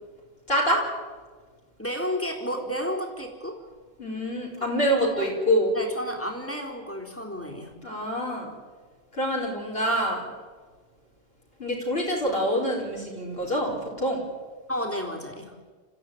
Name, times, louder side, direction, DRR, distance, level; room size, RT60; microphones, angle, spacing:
voice 1, 0.5-0.8 4.0-5.7 7.8-8.5 9.1-10.3 11.6-14.2, equal, 60° left, -2 dB, 4.9 m, -26 dB
voice 2, 1.8-3.6 4.6-5.3 5.7-7.7 14.7-15.5, equal, 10° left, 1 dB, 3.8 m, -32 dB
28.5 x 15.0 x 9.4 m, 1.5 s
omnidirectional pair, 1.1 m